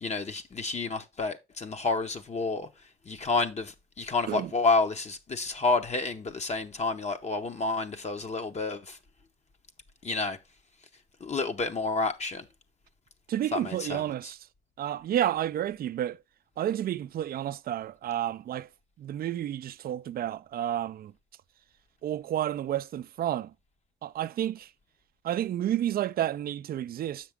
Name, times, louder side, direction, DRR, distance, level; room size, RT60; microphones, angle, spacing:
voice 1, 0.0-2.7 3.1-9.0 10.0-10.4 11.2-12.5 13.5-14.0, left 3 dB, 35° left, 0.8 m, -29 dB
voice 2, 13.3-14.4 14.8-16.2 16.6-18.7 19.0-21.1 22.0-23.5 24.0-24.7 25.2-27.3, right 11 dB, 50° right, 0.4 m, -30 dB
7.2 x 5.9 x 3.5 m
cardioid pair, 90°, 20 cm